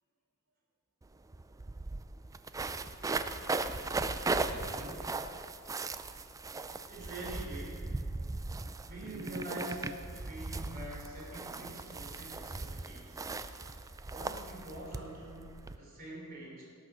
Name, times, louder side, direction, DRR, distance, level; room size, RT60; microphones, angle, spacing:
sound 1, 1.0-1.1 1.3-15.8, right 3 dB, 15° right, 0.3 m, -38 dB
voice 1, 4.3-5.4 12.7-14.1, right 1 dB, 85° right, 1 dB, 1.9 m, -53 dB
voice 2, 6.9-8.0 8.9-13.2 14.1-16.6, right 1 dB, 45° right, -4 dB, 3.5 m, -45 dB
18.0 x 6.2 x 6.2 m, 2.4 s
head